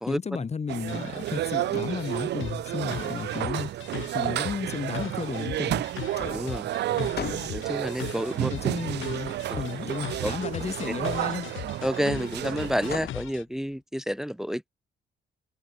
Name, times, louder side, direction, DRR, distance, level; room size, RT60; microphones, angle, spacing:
voice 1, 0.1-3.7 4.1-5.8 6.9-7.1 8.5-11.5, left 5 dB, 35° left, 1.3 m, -33 dB
sound 1, 0.7-12.9, right 14 dB, 60° right, 0.4 m, -31 dB
sound 2, 0.9-13.4, left 13 dB, 80° left, 6.7 m, -40 dB
sound 3, 1.2-1.3 1.6-2.7 3.5-4.5 5.4-5.9 6.2-8.1 9.8-10.3 12.4-13.8, left 8 dB, 55° left, 3.4 m, -41 dB
voice 2, 6.3-6.7 7.5-8.5 10.2-10.3 10.8-10.9 11.8-14.6, equal, ahead, 1.4 m, -29 dB
cardioid pair, 90°, 20 cm